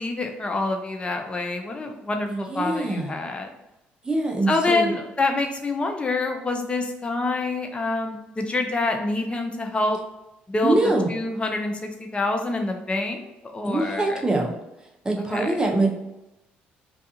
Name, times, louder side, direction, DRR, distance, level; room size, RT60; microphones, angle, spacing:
voice 1, 0.0-3.5 4.5-10.0 10.5-10.8 11.1-11.7 12.1-14.2 15.2-15.5, left 2 dB, 25° left, 4 dB, 0.5 m, -26 dB
voice 2, 2.3-3.2 4.0-4.9 10.6-11.1 13.6-14.5 15.0-15.9, right 2 dB, 20° right, 0 dB, 0.7 m, -24 dB
2.4 x 2.3 x 2.7 m, 0.92 s
supercardioid pair, 70°, 4 cm